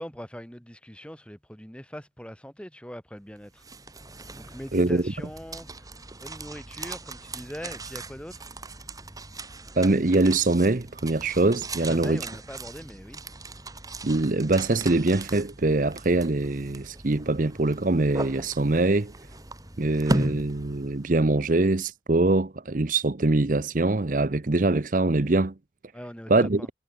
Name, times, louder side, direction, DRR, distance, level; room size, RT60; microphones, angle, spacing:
voice 1, 0.0-3.6 4.4-5.9 6.2-8.5 11.8-13.2 25.9-26.7, equal, 5° left, 5.1 m, -41 dB
sound 1, 3.4-21.4, right 1 dB, 20° right, 3.0 m, -38 dB
voice 2, 4.7-5.0 9.8-12.2 14.0-19.1 19.8-25.5 26.3-26.6, right 2 dB, 45° right, 0.8 m, -23 dB
head